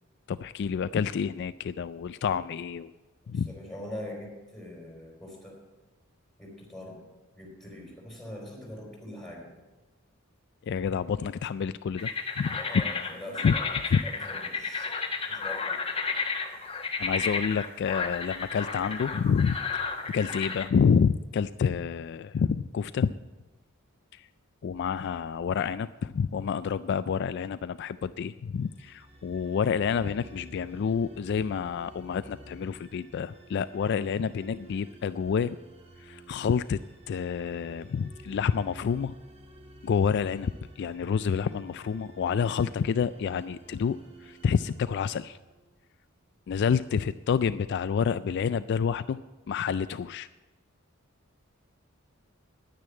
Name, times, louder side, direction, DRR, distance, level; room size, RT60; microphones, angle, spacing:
voice 1, 0.3-2.9 3.3-3.5 10.6-12.1 12.4-12.6 13.4-13.5 13.9-14.0 17.0-23.1 24.1-24.2 24.6-35.6 36.0-36.8 37.1-39.1 39.8-40.5 40.8-45.4 46.5-49.2 49.5-50.3, left 6 dB, 55° left, 14 dB, 0.3 m, -28 dB
voice 2, 3.2-5.6 6.4-7.0 7.3-9.5 12.6-14.9 15.3-15.8, left 1 dB, ahead, -2 dB, 4.4 m, -43 dB
sound 1, 12.0-20.7, left 5 dB, 25° left, 1.2 m, -32 dB
sound 2, 28.6-45.8, right 1 dB, 30° right, 1.6 m, -51 dB
10.5 x 9.6 x 8.6 m, 1.2 s
head